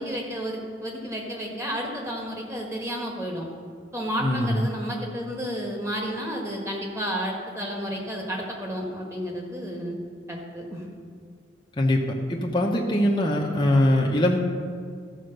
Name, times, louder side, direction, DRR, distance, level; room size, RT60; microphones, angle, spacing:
voice 1, 0.0-3.5 3.9-10.0 10.3-10.9, equal, 15° right, -1 dB, 1.5 m, -31 dB
voice 2, 4.2-4.7 11.7-12.0 12.3-14.4, left 1 dB, 25° left, -1 dB, 0.8 m, -22 dB
13.0 x 5.0 x 6.6 m, 2.1 s
head